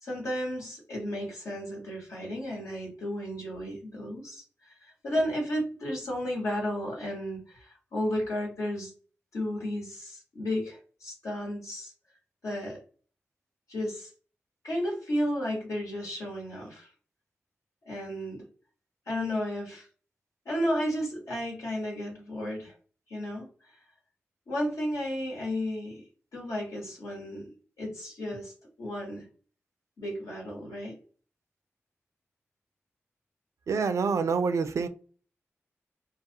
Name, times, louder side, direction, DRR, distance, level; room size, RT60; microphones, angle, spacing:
voice 1, 0.0-4.4 4.8-8.9 9.3-11.9 12.4-12.8 13.7-14.1 14.6-16.9 17.9-18.5 19.1-19.9 20.4-22.7 23.1-23.5 24.5-26.0 26.3-27.5 27.8-29.3 30.0-31.0, equal, 85° left, 1.1 m, -33 dB
voice 2, 33.7-34.9, right 5 dB, 75° right, 0.3 m, -26 dB
2.3 x 2.3 x 2.7 m
cardioid pair, 45°, 5 cm